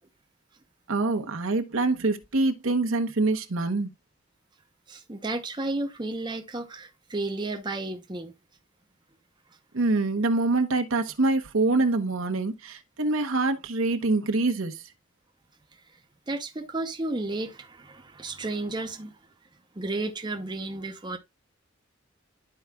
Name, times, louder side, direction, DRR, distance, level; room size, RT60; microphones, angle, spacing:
voice 1, 0.9-3.9 9.7-14.8, right 2 dB, 80° right, 0.9 m, -25 dB
voice 2, 4.9-8.4 16.3-19.2 19.7-21.2, right 2 dB, 20° right, 0.7 m, -32 dB
12.0 x 4.7 x 2.3 m
head